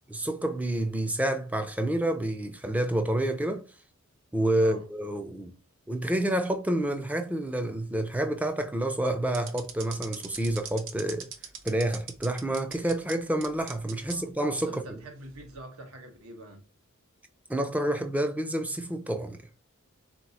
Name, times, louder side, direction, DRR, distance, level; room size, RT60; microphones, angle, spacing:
voice 1, 0.1-3.6 4.3-5.5 5.9-11.3 11.6-15.0 17.5-19.5, right 1 dB, 5° right, 0.4 m, -28 dB
voice 2, 4.6-4.9 14.0-14.3 14.6-16.6, right 1 dB, 80° right, 1.2 m, -45 dB
sound 1, 9.3-13.1 13.4-14.1 14.6-14.7 15.3-15.6, right 7 dB, 60° right, 0.7 m, -40 dB
3.8 x 2.9 x 4.0 m
head